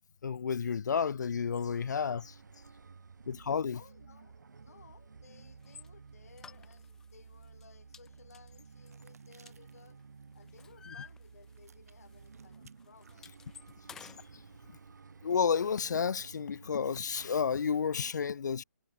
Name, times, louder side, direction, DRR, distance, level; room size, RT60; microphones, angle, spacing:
voice 1, 0.2-2.3 3.3-3.8 14.0-14.1 15.2-18.6, left 6 dB, 75° left, 0.5 m, -31 dB
sound 1, 1.5-18.1, right 5 dB, 85° right, 2.1 m, -54 dB
voice 2, 1.6-10.0 10.3-13.5, left 6 dB, 55° left, 4.7 m, -61 dB
sound 2, 5.6-5.9 6.4-7.1 7.4-7.6 7.9-10.0 10.3-11.8 12.0-12.2 12.5-14.3, left 6 dB, 5° left, 1.2 m, -53 dB
sound 3, 8.6-14.2, right 6 dB, 60° right, 4.9 m, -67 dB
hypercardioid pair, 175°, 10 cm